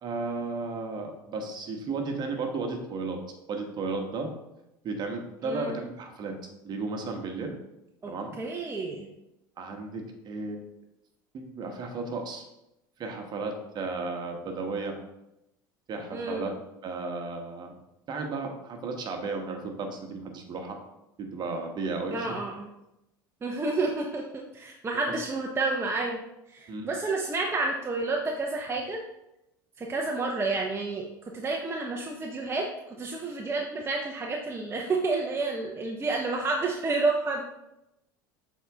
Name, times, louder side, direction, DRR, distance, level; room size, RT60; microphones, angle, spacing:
voice 1, 0.0-3.2 3.5-4.3 4.8-6.4 6.6-7.6 8.0-8.4 9.6-10.6 11.3-12.4 13.0-14.9 15.9-16.5 16.8-17.8 18.1-20.8 21.2-22.4 26.7-26.9, right 3 dB, 40° right, 4 dB, 1.3 m, -34 dB
voice 2, 5.4-5.8 8.0-8.1 8.4-9.1 16.1-16.4 22.1-22.7 23.4-26.2 26.5-29.0 29.8-37.4, right 3 dB, 20° right, 0 dB, 0.8 m, -30 dB
7.0 x 4.1 x 3.6 m, 0.89 s
hypercardioid pair, 85°, 11 cm